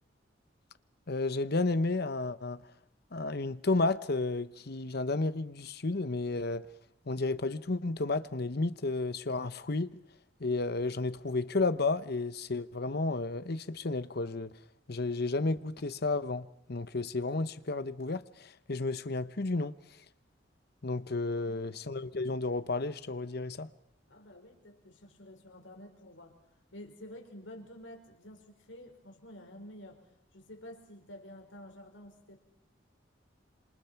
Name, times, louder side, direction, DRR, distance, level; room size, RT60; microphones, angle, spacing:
voice 1, 1.1-2.6 3.1-6.7 7.1-10.0 10.4-14.5 14.9-19.7 20.8-23.7, left 3 dB, 55° left, 1.0 m, -32 dB
voice 2, 24.1-26.4 26.7-32.4, left 1 dB, 85° left, 5.0 m, -50 dB
27.5 x 27.0 x 5.9 m
head